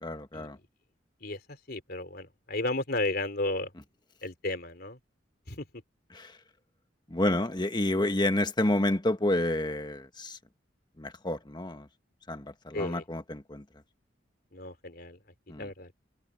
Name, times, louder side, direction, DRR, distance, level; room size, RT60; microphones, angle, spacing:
voice 1, 0.0-0.6 6.1-6.4 7.1-10.4 11.0-11.9 12.3-13.6 15.5-15.7, left 1 dB, 25° left, 1.4 m, -29 dB
voice 2, 1.2-3.7 4.2-5.0 5.5-5.7 12.7-13.0 14.5-15.2 15.6-16.0, left 2 dB, 55° left, 3.4 m, -33 dB
head